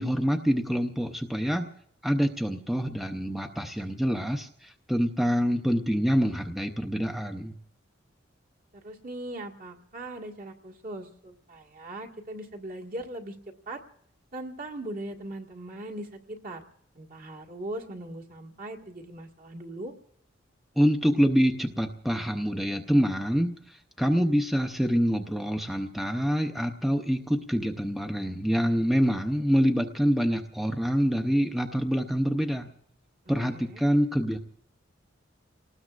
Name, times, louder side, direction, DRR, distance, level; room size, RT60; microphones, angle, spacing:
voice 1, 0.0-1.7 2.0-7.5 20.8-32.7 33.3-34.4, equal, ahead, 4 dB, 0.7 m, -26 dB
voice 2, 8.8-13.4 13.7-13.8 14.3-16.6 17.0-19.9 33.3-33.8, right 1 dB, 45° right, 1 dB, 1.8 m, -39 dB
30.0 x 19.0 x 2.5 m, 0.70 s
head